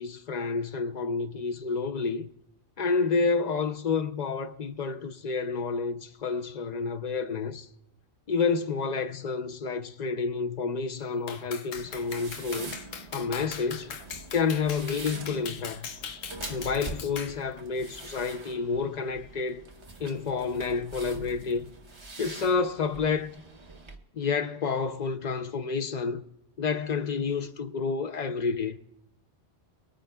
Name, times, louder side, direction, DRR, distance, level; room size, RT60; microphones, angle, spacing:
voice 1, 0.0-2.3 2.8-7.7 8.3-12.7 13.1-13.9 14.3-15.9 16.5-19.6 20.0-21.7 22.2-23.3 24.1-26.2 26.6-28.8, left 5 dB, 55° left, 0.5 m, -29 dB
Clapping, 11.3-17.4, left 6 dB, 85° left, 1.1 m, -40 dB
sound 1, 11.7-24.0, right 3 dB, 25° right, 0.8 m, -44 dB
24.0 x 9.0 x 2.2 m
omnidirectional pair, 1.3 m